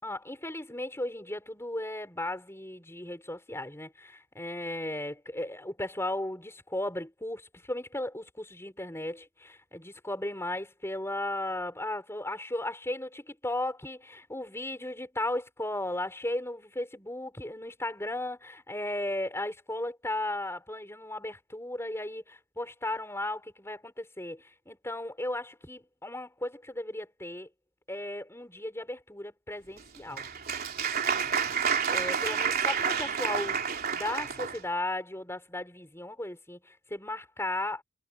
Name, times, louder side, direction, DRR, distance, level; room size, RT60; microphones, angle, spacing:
voice 1, 0.0-27.5 27.9-30.3 31.9-37.8, left 1 dB, 10° left, 6.1 m, -36 dB
Applause, 29.8-34.6, right 7 dB, 45° right, 3.4 m, -29 dB
head